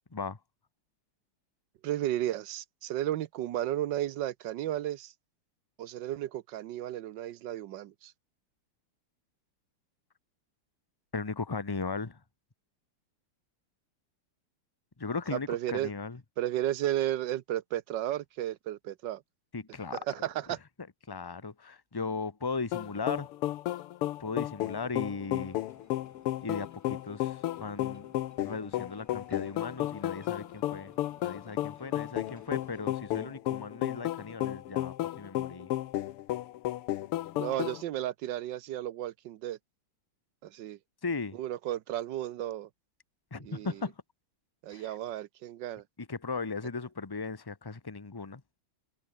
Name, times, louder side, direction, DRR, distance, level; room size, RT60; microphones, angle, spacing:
voice 1, 1.8-5.1 5.8-8.1 15.3-15.9 16.4-19.2 19.9-20.6 37.3-39.6 40.4-40.8 41.3-42.7 43.4-43.8 44.6-45.8, right 13 dB, 65° right, 1.2 m, -33 dB
voice 2, 11.1-12.2 15.0-16.2 19.5-20.0 21.1-23.3 24.2-25.6 26.4-28.1 28.4-30.9 31.2-35.7 41.0-41.4 43.3-43.9 44.7-44.9 46.1-48.4, left 4 dB, 25° left, 0.5 m, -37 dB
sound 1, 22.7-37.8, left 14 dB, 85° left, 1.8 m, -33 dB
sound 2, 25.4-33.0, left 1 dB, 5° left, 3.4 m, -61 dB
omnidirectional pair, 2.4 m